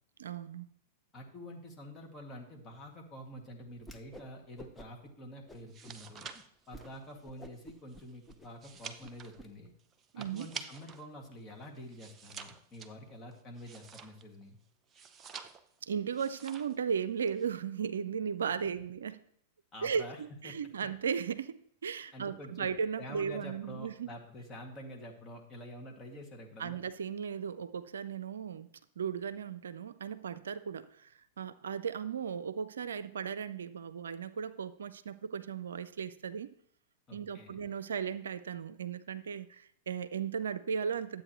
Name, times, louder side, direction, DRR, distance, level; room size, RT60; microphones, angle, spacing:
voice 1, 0.2-0.7 10.1-10.5 15.8-19.2 19.8-24.1 26.6-28.7 29.0-36.5 37.1-41.2, right 7 dB, 70° right, 15 dB, 0.5 m, -36 dB
voice 2, 1.1-6.3 6.7-9.7 10.1-14.6 19.7-20.6 22.1-22.7 23.0-26.8 37.1-37.6, equal, 25° left, 1 dB, 2.3 m, -48 dB
Whoosh swoosh swish, 3.8-4.3 4.6-5.1 5.5-6.0 6.3-6.4 6.7-6.9 7.2-9.5, equal, 5° left, 0.9 m, -51 dB
sound 1, 5.6-11.1 11.4-14.4 14.9-15.8 16.1-16.8 17.1-17.5, right 6 dB, 25° right, 0.7 m, -48 dB
12.0 x 8.2 x 3.1 m, 0.66 s
figure-of-eight pair, 95°, 0 cm